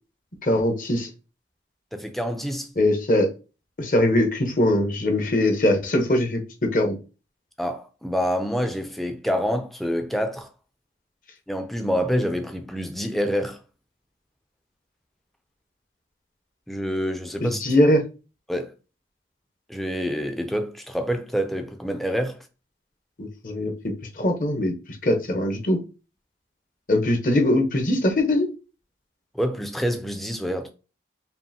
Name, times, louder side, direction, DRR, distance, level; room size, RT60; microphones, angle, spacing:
voice 1, 0.4-1.1 2.8-3.3 3.8-7.0 17.4-18.0 23.2-24.7 25.0-25.8 26.9-28.5, left 1 dB, 45° left, 0.9 m, -21 dB
voice 2, 1.9-2.7 7.6-10.5 11.5-13.6 16.7-17.6 18.5-18.7 19.7-22.5 29.3-30.7, equal, ahead, 0.4 m, -27 dB
5.4 x 2.5 x 2.7 m
head